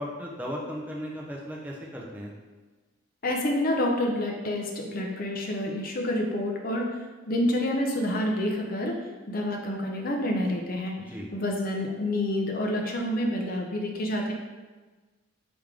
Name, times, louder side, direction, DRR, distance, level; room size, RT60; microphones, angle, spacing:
voice 1, 0.0-2.3 11.1-11.3, equal, 10° right, -3 dB, 0.5 m, -36 dB
voice 2, 3.2-7.0 7.3-11.0 11.3-14.3, left 1 dB, 40° left, 1 dB, 0.5 m, -28 dB
3.6 x 3.5 x 3.2 m, 1.3 s
head